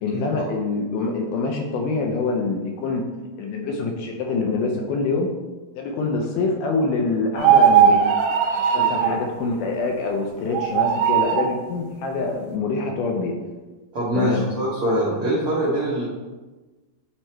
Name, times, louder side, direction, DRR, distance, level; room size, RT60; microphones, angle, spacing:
voice 1, 0.0-3.0 3.4-5.3 5.8-8.2 8.6-13.4 14.1-14.4, left 3 dB, 75° left, 2 dB, 2.0 m, -25 dB
sound 1, 7.4-9.2 10.5-11.5, right 8 dB, 85° right, 2.4 m, -18 dB
voice 2, 8.7-9.1 13.9-16.1, right 1 dB, 65° right, -7 dB, 1.3 m, -24 dB
9.1 x 3.1 x 4.3 m, 1.2 s
omnidirectional pair, 4.1 m